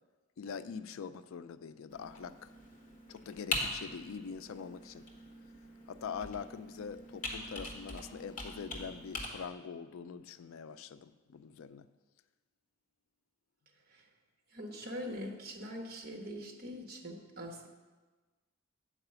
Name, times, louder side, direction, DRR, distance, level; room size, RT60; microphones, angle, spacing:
voice 1, 0.4-2.5 3.1-5.1 5.9-11.9, left 6 dB, 75° left, 13 dB, 0.4 m, -44 dB
Computer keyboard, 1.9-9.3, left 2 dB, 40° left, 1.3 m, -42 dB
voice 2, 14.5-17.7, equal, 50° right, 2 dB, 1.2 m, -43 dB
8.7 x 4.8 x 6.8 m, 1.3 s
head